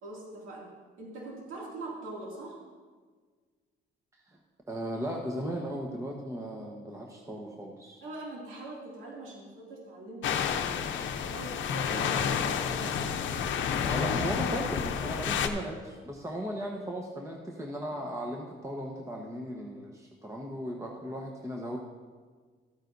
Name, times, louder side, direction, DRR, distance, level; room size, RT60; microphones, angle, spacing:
voice 1, 0.0-2.6 8.0-10.3 11.3-13.0, right 2 dB, 85° right, -3 dB, 2.5 m, -43 dB
voice 2, 4.7-8.0 11.9-12.4 13.8-21.8, equal, 15° right, 0 dB, 1.1 m, -37 dB
sound 1, 10.2-15.5, left 7 dB, 70° left, 0.7 m, -30 dB
13.5 x 9.0 x 2.7 m, 1.5 s
cardioid pair, 90°, 20 cm